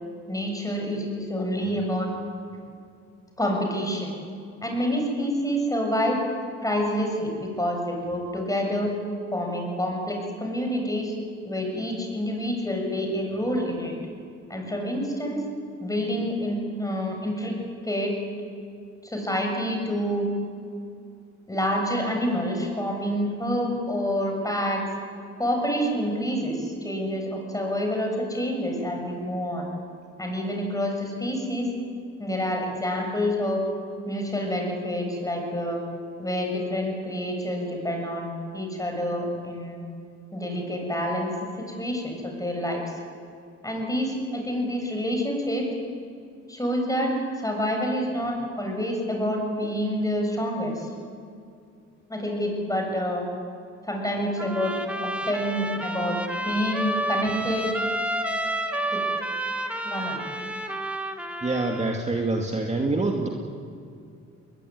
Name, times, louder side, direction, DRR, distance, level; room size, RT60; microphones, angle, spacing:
voice 1, 0.3-2.1 3.4-4.1 4.6-6.2 6.6-8.9 9.3-11.1 11.4-13.9 14.5-15.4 15.8-17.5 17.8-18.2 19.0-20.3 21.5-24.8 25.4-29.7 30.2-31.7 32.2-33.6 34.1-35.8 36.2-39.8 40.3-41.3 41.6-42.8 43.6-45.7 46.5-50.9 52.1-53.2 53.8-54.7 55.0-56.2 56.4-57.7 58.9-59.0 59.8-60.2, equal, 10° left, 1 dB, 7.6 m, -27 dB
Trumpet, 54.4-62.0, right 1 dB, 5° right, 2.4 m, -30 dB
voice 2, 61.4-63.3, right 2 dB, 20° right, 1 dB, 2.4 m, -25 dB
21.5 x 21.0 x 9.6 m, 2.5 s
cardioid pair, 90°, 30 cm